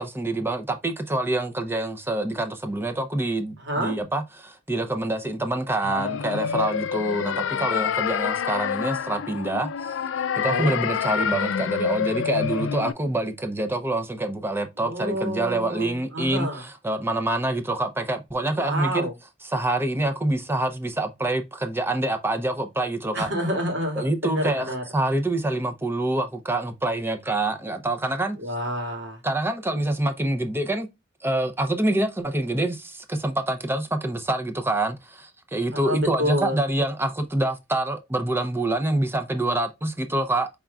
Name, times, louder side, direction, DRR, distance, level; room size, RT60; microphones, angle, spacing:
voice 1, 0.0-9.9 10.4-19.1 19.4-23.3 24.0-28.4 29.2-30.9 31.2-40.5, right 1 dB, 10° right, 0.6 m, -26 dB
voice 2, 3.6-3.9 10.4-10.7 14.8-16.6 18.6-19.1 23.1-24.8 28.4-29.2 35.7-36.6, equal, 80° right, 2.2 m, -28 dB
sound 1, 5.8-12.9, left 7 dB, 85° left, 0.3 m, -27 dB
5.4 x 3.5 x 2.3 m
head